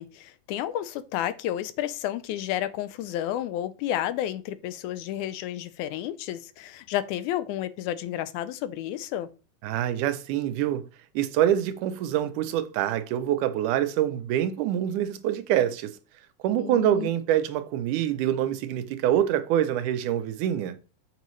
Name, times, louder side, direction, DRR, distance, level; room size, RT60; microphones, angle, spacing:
voice 1, 0.0-9.3 16.6-17.1, left 12 dB, 80° left, 1.9 m, -31 dB
voice 2, 9.6-10.8 11.2-16.0 16.4-20.8, right 11 dB, 85° right, 2.2 m, -25 dB
7.7 x 5.3 x 3.1 m
omnidirectional pair, 3.5 m